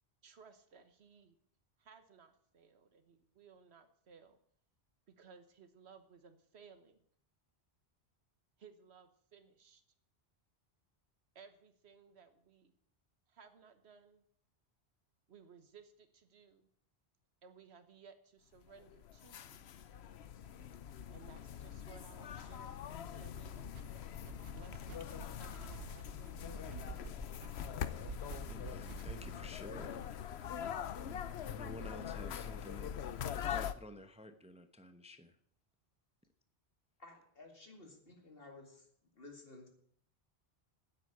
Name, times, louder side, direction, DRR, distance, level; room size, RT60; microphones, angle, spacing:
voice 1, 0.2-1.4 1.8-4.4 5.1-7.0 8.6-9.8 11.3-12.7 13.3-14.2 15.3-16.7 17.4-19.7 21.1-22.8 23.1-23.8 24.5-26.6, right 6 dB, 90° right, 9 dB, 1.4 m, -60 dB
sound 1, 18.7-33.7, left 9 dB, 85° left, 1.0 m, -43 dB
sound 2, 23.4-29.5, right 6 dB, 70° right, 1.0 m, -50 dB
voice 2, 28.5-30.5 31.0-35.4, left 1 dB, 5° right, 9 dB, 0.7 m, -52 dB
voice 3, 37.0-38.9 39.1-39.7, left 2 dB, 60° left, 3 dB, 2.4 m, -55 dB
9.7 x 8.1 x 9.2 m, 0.64 s
omnidirectional pair, 1.1 m